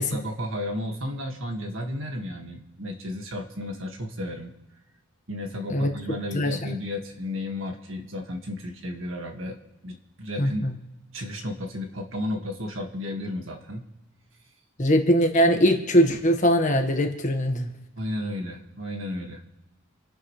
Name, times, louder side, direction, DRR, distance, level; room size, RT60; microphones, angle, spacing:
voice 1, 0.0-4.5 5.3-9.6 9.8-10.6 11.1-13.9 18.0-19.4, left 1 dB, 60° right, 2 dB, 2.0 m, -33 dB
voice 2, 6.3-6.7 10.4-10.7 14.8-17.7, equal, 35° left, 4 dB, 1.5 m, -21 dB
28.5 x 11.0 x 3.3 m, 1.1 s
head